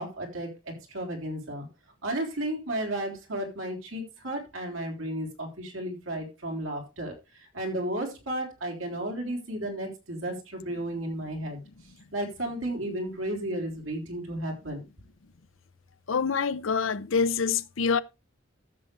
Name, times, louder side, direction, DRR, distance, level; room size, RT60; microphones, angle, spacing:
voice 1, 0.0-1.7 2.0-11.6 12.1-14.8, right 1 dB, 80° right, 3.7 m, -33 dB
voice 2, 16.1-18.0, left 5 dB, 80° left, 0.7 m, -26 dB
14.0 x 7.0 x 3.3 m
head